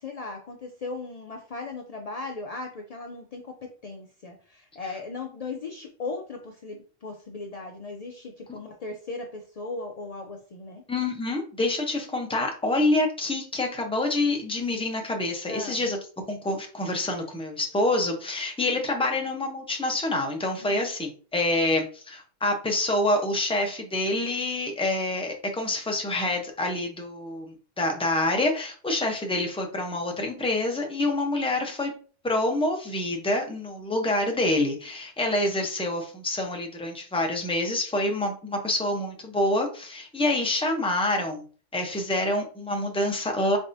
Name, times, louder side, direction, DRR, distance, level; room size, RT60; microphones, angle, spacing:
voice 1, 0.0-10.8 15.5-15.9 20.6-20.9, left 3 dB, 70° left, 2 dB, 0.3 m, -37 dB
voice 2, 10.9-16.0 16.3-31.9 32.2-41.4 41.7-43.6, left 2 dB, 5° left, 2 dB, 0.5 m, -27 dB
4.1 x 3.4 x 2.6 m, 0.39 s
omnidirectional pair, 1.3 m